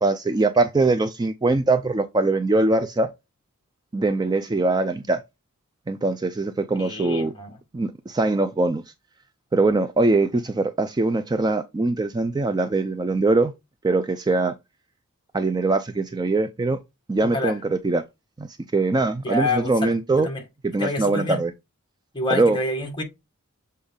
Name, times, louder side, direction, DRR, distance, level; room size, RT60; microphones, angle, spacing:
voice 1, 0.0-3.1 3.9-5.2 5.9-7.3 7.7-8.8 9.5-13.5 13.8-14.5 15.3-16.8 17.1-18.0 18.4-20.3 20.6-21.5 22.3-22.6, right 2 dB, 20° right, 0.4 m, -22 dB
voice 2, 6.8-7.5 17.2-17.6 19.2-20.4 20.8-21.4 22.1-23.0, left 2 dB, 20° left, 1.8 m, -28 dB
7.1 x 4.1 x 3.7 m
head